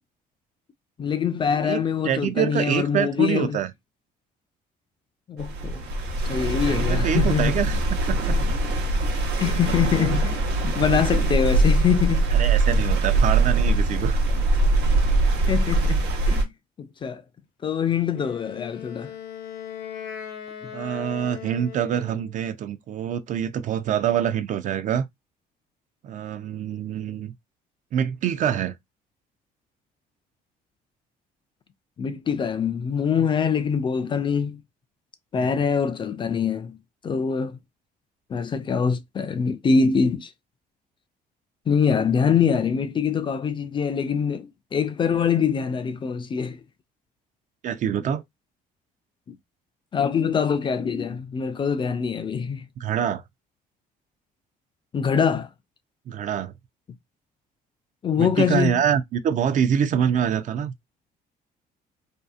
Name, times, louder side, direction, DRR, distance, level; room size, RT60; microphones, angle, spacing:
voice 1, 1.0-3.6 5.3-5.8 6.2-7.6 9.4-12.3 15.5-16.5 16.8-17.2 17.6-19.1 32.0-34.6 35.3-36.8 37.0-37.6 38.3-40.3 41.7-46.6 49.3-49.4 49.9-52.6 54.9-55.5 58.0-58.8, left 6 dB, 30° left, 0.3 m, -24 dB
voice 2, 1.6-3.7 6.6-7.8 8.1-8.4 12.3-14.2 20.7-25.1 26.0-27.3 27.9-28.8 35.4-35.6 47.6-48.2 52.8-53.2 56.1-56.5 58.2-60.7, right 9 dB, 50° right, 0.4 m, -25 dB
sound 1, 5.4-16.4, right 2 dB, 80° right, 0.9 m, -22 dB
Wind instrument woodwind instrument, 18.1-22.4, left 8 dB, 80° left, 0.7 m, -38 dB
2.7 x 2.4 x 2.3 m
cardioid pair, 110°, 17 cm